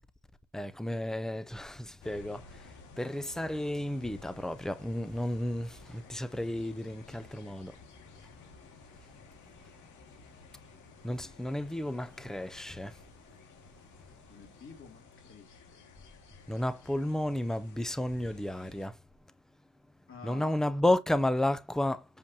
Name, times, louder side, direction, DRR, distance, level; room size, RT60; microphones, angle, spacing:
voice 1, 0.5-2.6 3.0-7.8 11.0-13.0 16.5-19.0 20.2-22.1, left 1 dB, ahead, 0.6 m, -32 dB
sound 1, 2.0-18.9, left 4 dB, 75° left, 2.2 m, -54 dB
voice 2, 14.3-15.8 20.1-20.9, left 5 dB, 45° left, 2.9 m, -51 dB
6.8 x 5.2 x 2.9 m
cardioid pair, 90°, 30 cm